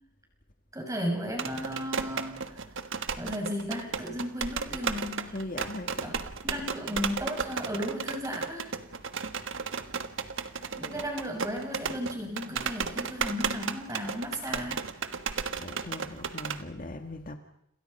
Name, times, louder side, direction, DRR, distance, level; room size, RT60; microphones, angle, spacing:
voice 1, 0.7-2.4 3.2-5.3 6.0-6.1 6.4-8.7 10.8-14.9, equal, 15° right, 6.7 m, -35 dB
sound 1, 1.3-16.6, right 5 dB, 60° right, 1.4 m, -34 dB
voice 2, 5.3-6.2 9.7-9.8 10.2-11.1 15.5-17.4, left 2 dB, 40° left, 1.9 m, -40 dB
29.5 x 27.5 x 5.6 m
head